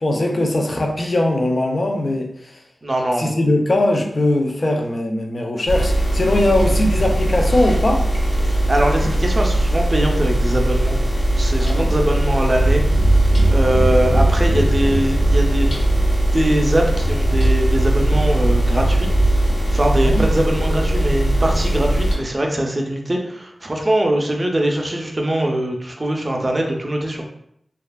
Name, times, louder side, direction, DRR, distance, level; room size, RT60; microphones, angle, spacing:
voice 1, 0.0-2.6 3.2-8.1 11.6-12.0 20.0-20.3, left 1 dB, 45° left, 2 dB, 0.4 m, -20 dB
voice 2, 2.8-3.3 8.4-11.0 11.4-12.8 13.1-15.7 16.3-19.1 19.7-27.2, right 1 dB, 30° right, 1 dB, 0.4 m, -22 dB
sound 1, 5.7-22.2, right 1 dB, 90° left, 1.1 m, -18 dB
2.7 x 2.3 x 2.2 m, 0.74 s
wide cardioid pair, 80°, 0 cm